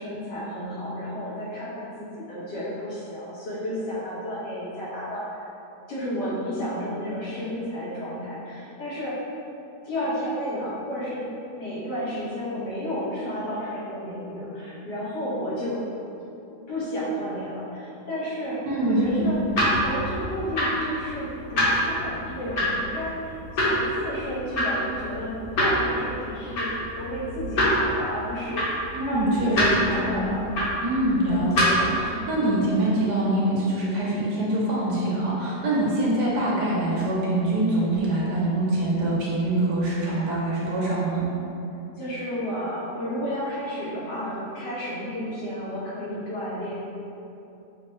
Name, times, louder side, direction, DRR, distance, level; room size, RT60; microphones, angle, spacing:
voice 1, 0.0-5.5 5.9-9.2 9.8-11.2 11.6-15.8 16.7-19.4 19.7-28.8 29.1-30.5 31.2-31.5 32.0-32.2 42.0-46.7, equal, 85° left, -9 dB, 1.8 m, -32 dB
voice 2, 18.7-19.4 28.9-30.5 30.8-41.3, right 1 dB, 80° right, -6 dB, 1.5 m, -24 dB
sound 1, 19.0-32.0, equal, 65° left, 1.5 m, -27 dB
5.8 x 2.3 x 3.0 m, 2.9 s
omnidirectional pair, 1.7 m